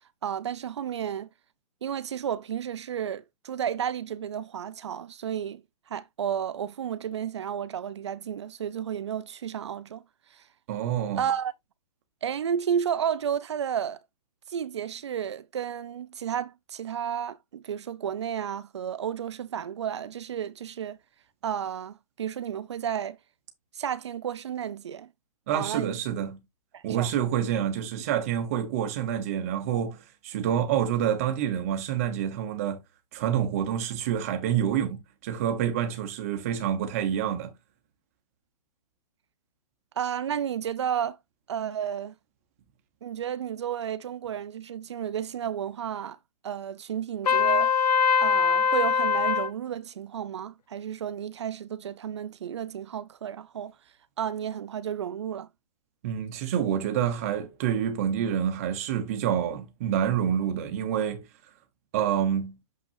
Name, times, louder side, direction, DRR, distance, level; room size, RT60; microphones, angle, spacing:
voice 1, 0.2-1.3 1.8-5.6 5.9-10.0 10.3-10.4 11.2-11.5 12.2-14.0 14.5-21.0 21.4-23.2 23.7-25.1 25.5-26.0 26.7-27.1 40.0-41.2 41.5-42.1 43.0-46.2 46.4-47.7 48.2-53.7 54.2-55.5, right 9 dB, 45° right, 0.7 m, -32 dB
voice 2, 10.7-11.3 25.5-26.4 26.8-32.8 33.1-37.5 56.0-61.3 61.9-62.6, right 9 dB, 20° right, 1.2 m, -27 dB
Trumpet, 47.3-49.5, left 6 dB, 80° left, 0.8 m, -22 dB
6.9 x 5.8 x 2.7 m
hypercardioid pair, 175°, 20 cm